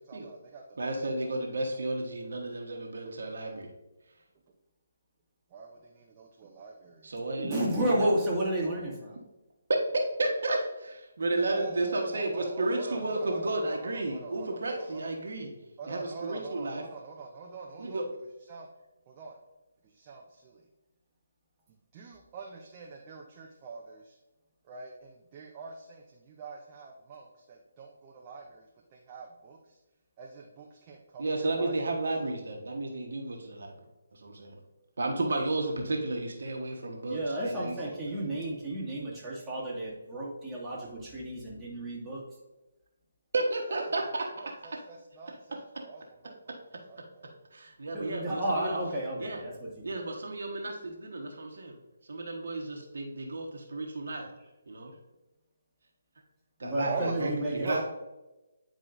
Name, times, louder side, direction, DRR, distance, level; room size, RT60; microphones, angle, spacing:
voice 1, 0.1-1.3 5.5-7.1 11.4-15.1 15.8-18.0 18.5-18.7 19.1-19.4 20.0-20.6 21.9-24.1 24.7-28.7 28.9-29.6 30.2-31.7 37.4-38.2 43.7-43.8 44.4-46.6 46.9-47.3 56.9-57.8, right 4 dB, 30° right, 0 dB, 0.7 m, -43 dB
voice 2, 0.8-3.7 7.0-8.1 9.9-15.5 15.9-16.8 17.8-18.1 31.2-33.8 34.1-34.6 35.0-37.8 43.3-44.5 47.5-48.8 49.2-49.4 49.8-51.7 52.1-54.3 54.7-54.9 56.6-57.8, right 2 dB, 60° right, 2 dB, 1.2 m, -32 dB
voice 3, 7.4-9.2 37.1-42.2 47.9-50.1 56.6-57.8, right 1 dB, 10° right, -8 dB, 2.0 m, -32 dB
9.6 x 4.7 x 2.6 m, 1.0 s
figure-of-eight pair, 145°, 0 cm